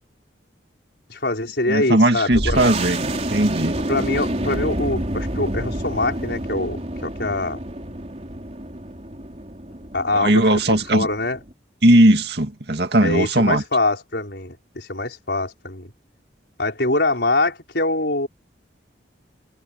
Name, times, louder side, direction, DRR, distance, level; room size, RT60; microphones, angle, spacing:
voice 1, 1.1-2.6 3.9-7.6 9.9-10.4 10.9-11.4 13.0-15.9 16.6-18.3, left 2 dB, 65° left, 4.9 m, -24 dB
voice 2, 1.7-3.8 10.1-11.1 11.8-13.6, right 1 dB, 60° right, 2.2 m, -18 dB
sound 1, 2.3-11.5, right 1 dB, 35° right, 4.6 m, -28 dB
head